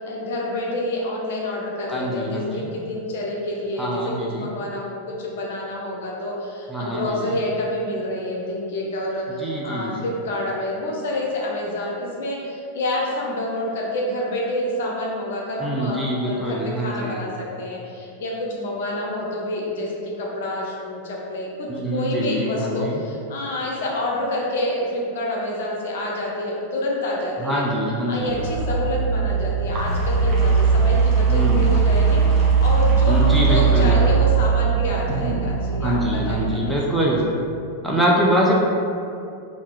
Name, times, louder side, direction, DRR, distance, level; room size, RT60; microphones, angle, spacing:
voice 1, 0.0-27.6 28.1-36.8, left 1 dB, 55° left, -2 dB, 0.8 m, -28 dB
voice 2, 1.9-2.7 3.8-4.5 6.7-7.3 9.4-10.0 15.6-17.2 21.7-23.0 27.4-28.4 31.3-31.7 33.0-33.9 35.2-35.4 35.8-37.2 37.8-38.6, equal, ahead, -5 dB, 0.7 m, -24 dB
sound 1, 28.2-36.8, right 5 dB, 30° right, 1.1 m, -19 dB
3.6 x 2.8 x 4.7 m, 2.5 s
figure-of-eight pair, 90°, 0 cm